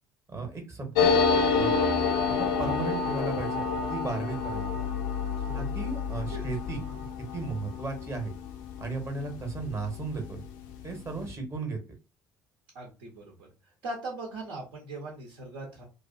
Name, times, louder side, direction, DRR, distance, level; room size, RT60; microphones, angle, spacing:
voice 1, 0.3-1.1 1.5-1.8 2.2-4.7 5.5-6.8 7.2-8.3 8.8-10.4 10.8-11.8, right 3 dB, 30° right, 3 dB, 1.0 m, -35 dB
sound 1, 0.9-10.1 10.4-10.5 10.7-11.3, left 5 dB, 65° left, 0.5 m, -28 dB
voice 2, 5.4-5.7 6.2-6.5 6.9-7.0 12.7-15.8, right 2 dB, 60° right, -2 dB, 0.8 m, -40 dB
2.4 x 2.4 x 2.4 m, 0.31 s
figure-of-eight pair, 55°, 10 cm